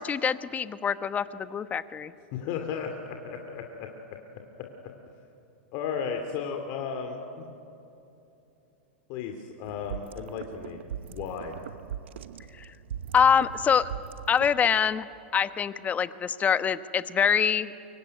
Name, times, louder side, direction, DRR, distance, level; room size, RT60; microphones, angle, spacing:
voice 1, 0.0-2.1 12.6-12.7 13.1-13.9 14.3-15.1 15.3-17.7, left 7 dB, 25° left, 13 dB, 1.1 m, -25 dB
voice 2, 2.3-3.9 4.6-4.7 5.7-7.5 9.1-10.8 11.1-11.5, left 6 dB, 50° left, 4 dB, 2.5 m, -34 dB
sound 1, 9.6-14.8, right 9 dB, 75° right, 1.0 m, -40 dB
25.5 x 23.5 x 9.6 m, 2.9 s
hypercardioid pair, 105°, 6 cm